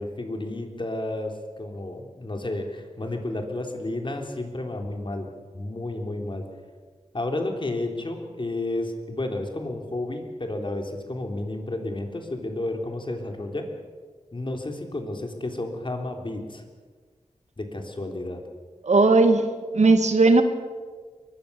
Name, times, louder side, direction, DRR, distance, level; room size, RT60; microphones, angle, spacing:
voice 1, 0.0-6.4 7.1-13.7 14.3-16.6 17.6-18.4, left 2 dB, 45° left, 3 dB, 3.5 m, -31 dB
voice 2, 18.8-19.5 19.7-20.4, right 3 dB, 75° right, 8 dB, 2.0 m, -17 dB
22.5 x 21.5 x 7.0 m, 1.5 s
wide cardioid pair, 80°, 12 cm